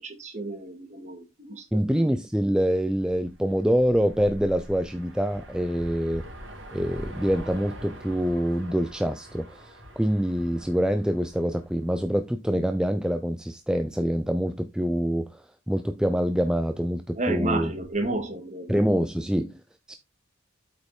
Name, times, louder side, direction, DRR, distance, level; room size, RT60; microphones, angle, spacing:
voice 1, 0.0-2.0 17.2-18.9, right 2 dB, 35° right, 2.2 m, -32 dB
voice 2, 1.7-6.3 6.7-17.7 18.7-19.6 19.9-20.0, equal, 5° right, 0.5 m, -25 dB
sound 1, 3.0-12.2, equal, 65° right, 3.3 m, -44 dB
8.4 x 5.5 x 4.5 m
head